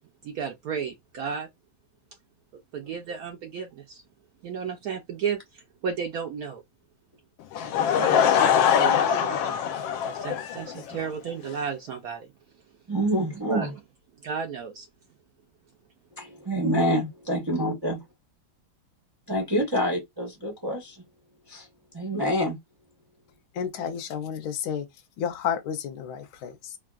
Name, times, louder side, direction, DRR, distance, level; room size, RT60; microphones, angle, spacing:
voice 1, 0.2-1.5 2.5-4.0 4.4-6.6 7.6-8.4 8.8-9.6 10.0-12.3 13.5-13.7 14.2-14.9, right 6 dB, 70° right, 0.9 m, -33 dB
Laughter / Crowd, 7.5-11.1, left 8 dB, 85° left, 1.3 m, -23 dB
voice 2, 12.9-13.7 16.2-18.0 19.3-21.0 21.5-21.7 21.9-22.6, equal, 30° right, 0.4 m, -26 dB
voice 3, 23.5-24.9 25.2-26.8, left 8 dB, 65° left, 1.0 m, -31 dB
3.5 x 2.3 x 2.3 m
omnidirectional pair, 2.1 m